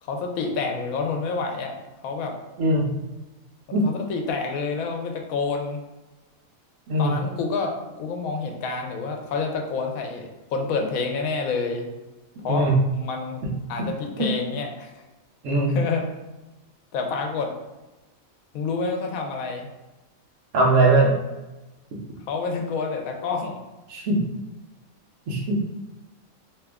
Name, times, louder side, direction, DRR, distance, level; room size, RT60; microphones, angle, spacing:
voice 1, 0.0-1.7 2.0-2.4 3.7-5.8 7.0-11.9 12.4-13.4 13.7-15.0 15.7-16.1 16.9-17.5 18.5-19.7 22.3-23.6, left 4 dB, 80° left, 3 dB, 1.0 m, -28 dB
voice 2, 15.4-15.7 20.5-21.1 23.9-24.2 25.3-25.6, right 2 dB, 65° right, -2 dB, 1.1 m, -20 dB
2.9 x 2.4 x 3.4 m, 1.1 s
omnidirectional pair, 1.5 m